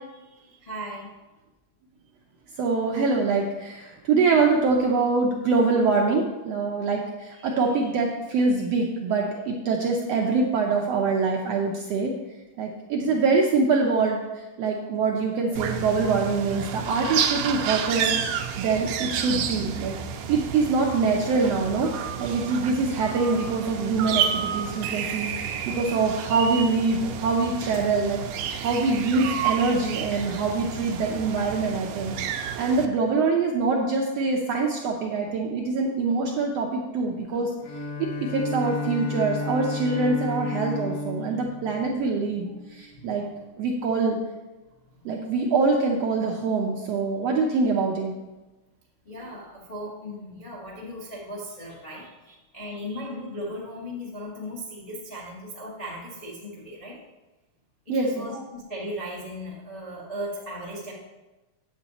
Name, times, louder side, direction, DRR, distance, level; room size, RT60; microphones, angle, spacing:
voice 1, 0.6-1.1 4.6-4.8 13.0-13.2 34.7-34.8 37.3-37.4 42.9-43.2 45.0-45.1 49.0-57.0 57.8-60.9, equal, 40° left, -3 dB, 0.5 m, -37 dB
voice 2, 2.6-12.1 12.6-14.2 14.6-20.0 20.3-21.9 22.2-28.2 28.6-37.5 38.0-43.2 43.6-44.2 45.0-48.2 57.9-58.3, right 4 dB, 75° right, 0 dB, 1.5 m, -24 dB
sound 1, 15.6-32.9, right 8 dB, 90° right, 2.3 m, -30 dB
Bowed string instrument, 37.6-42.7, left 2 dB, 70° left, 1.5 m, -32 dB
8.7 x 8.0 x 4.1 m, 1.1 s
omnidirectional pair, 3.7 m